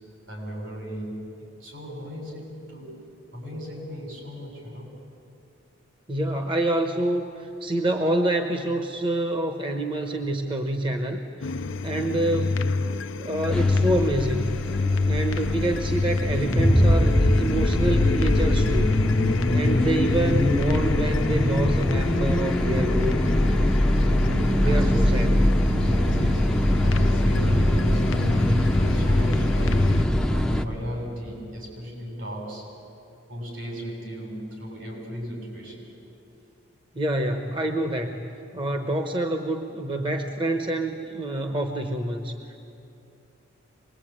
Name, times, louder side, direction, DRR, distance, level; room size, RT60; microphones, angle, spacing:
voice 1, 0.3-3.0 3.3-4.9 24.2-32.7 33.3-35.9, equal, 80° right, -1 dB, 7.4 m, -35 dB
voice 2, 6.1-12.7 13.2-14.5 15.0-19.0 19.5-23.2 24.6-25.3 36.9-38.3 38.5-42.6, right 1 dB, 25° right, 5 dB, 1.0 m, -27 dB
sound 1, 11.4-30.1, left 4 dB, 85° left, 0.6 m, -27 dB
sound 2, 13.5-30.6, equal, 5° left, 0.6 m, -22 dB
25.0 x 21.0 x 8.9 m, 2.8 s
head